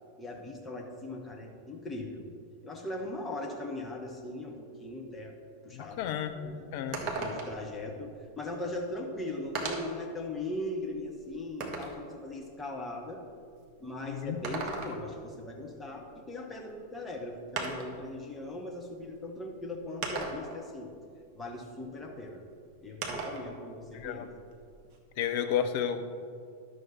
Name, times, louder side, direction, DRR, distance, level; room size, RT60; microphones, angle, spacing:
voice 1, 0.2-2.3 2.6-5.4 5.6-6.1 6.3-13.2 13.8-20.9 21.3-22.4 22.8-24.3, left 1 dB, 15° left, 0 dB, 1.3 m, -39 dB
voice 2, 5.7-7.0 14.1-14.4 23.9-24.3 25.2-26.0, left 9 dB, 50° left, 7 dB, 0.7 m, -32 dB
sound 1, 6.0-6.1 6.4-6.5 6.9-7.7 8.7-8.8 9.6-10.0 10.6-12.0 14.2-15.2 16.7-16.8 17.6-18.0 19.0-19.1 20.0-20.6 23.0-23.5 23.9-25.0, right 3 dB, 35° right, 1.4 m, -37 dB
11.0 x 6.4 x 4.4 m, 2.3 s
figure-of-eight pair, 90°, 0 cm